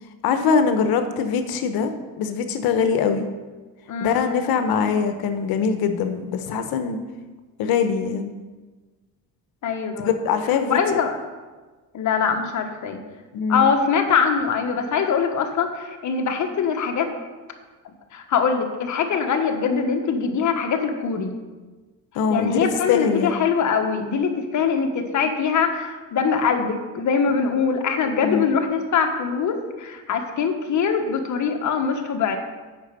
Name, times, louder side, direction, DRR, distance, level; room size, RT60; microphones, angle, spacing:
voice 1, 0.2-1.9 2.2-3.3 4.0-7.0 7.6-8.3 10.0-10.8 13.3-13.7 22.1-22.6 22.9-23.4 28.2-28.5, left 6 dB, 80° left, 8 dB, 1.0 m, -22 dB
voice 2, 3.9-4.4 9.6-10.1 10.7-11.2 11.9-13.0 13.5-17.1 17.8-21.3 22.3-32.4, left 6 dB, 55° left, 4 dB, 1.3 m, -23 dB
8.9 x 6.0 x 6.7 m, 1.3 s
cardioid pair, 120°, 36 cm